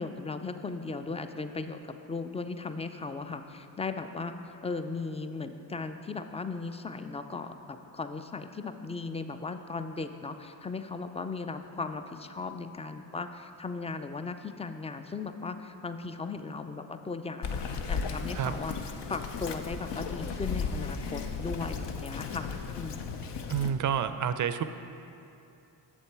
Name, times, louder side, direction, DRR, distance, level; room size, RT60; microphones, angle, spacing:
voice 1, 0.0-4.3 4.6-23.0, left 4 dB, 15° left, 9 dB, 0.4 m, -37 dB
Bird vocalization bird call bird song, 17.4-23.7, left 5 dB, 65° left, 0.7 m, -35 dB
voice 2, 23.5-24.6, right 8 dB, 45° right, 11 dB, 0.4 m, -29 dB
7.1 x 6.9 x 4.7 m, 2.7 s
supercardioid pair, 55°, 45 cm